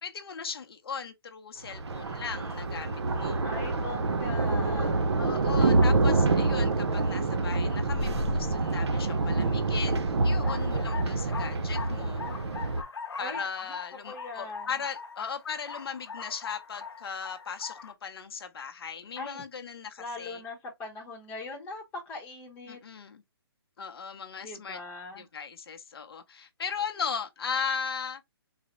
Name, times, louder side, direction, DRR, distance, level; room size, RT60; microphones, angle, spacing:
voice 1, 0.0-3.5 5.2-12.2 13.2-20.4 22.7-23.2 23.8-24.8 25.2-28.2, left 6 dB, 65° left, 0.6 m, -37 dB
Thunder, 1.6-12.8, right 3 dB, 90° right, 0.7 m, -26 dB
voice 2, 3.4-5.0 13.2-13.5 14.1-14.7 19.2-19.4 20.0-22.8 24.4-25.3, left 3 dB, 10° left, 0.8 m, -40 dB
sound 1, 10.3-17.9, left 5 dB, 90° left, 0.9 m, -42 dB
4.0 x 2.1 x 2.8 m
hypercardioid pair, 165°, 14 cm